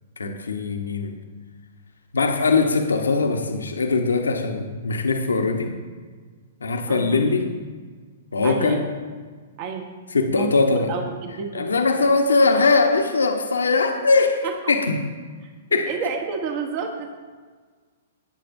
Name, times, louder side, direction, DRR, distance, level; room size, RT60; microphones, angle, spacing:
voice 1, 0.2-1.1 2.1-5.7 6.6-7.5 8.3-8.8 10.1-10.9 11.5-15.0 15.7-15.9, left 3 dB, 85° left, 4 dB, 1.0 m, -21 dB
voice 2, 6.9-7.2 8.4-8.8 9.6-9.9 10.3-10.6 10.9-11.6 14.4-14.7 15.9-17.1, right 5 dB, 40° right, 4 dB, 1.2 m, -30 dB
18.0 x 8.5 x 2.6 m, 1.5 s
hypercardioid pair, 115°, 0 cm